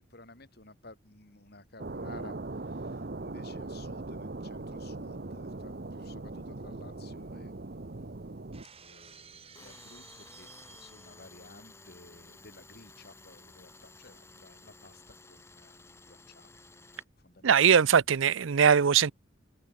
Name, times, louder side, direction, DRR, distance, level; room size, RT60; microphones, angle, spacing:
voice 1, 0.1-7.5 8.8-16.5 16.9-18.0, left 2 dB, 50° left, 4.6 m, -54 dB
sound 1, 1.8-8.7, right 2 dB, 50° right, 0.9 m, -40 dB
Shatter, 8.5-11.3, right 7 dB, 30° right, 6.5 m, -54 dB
Tools, 9.5-17.0, left 3 dB, 15° left, 2.4 m, -54 dB
voice 2, 17.4-19.1, right 7 dB, 75° right, 0.6 m, -21 dB
open air
head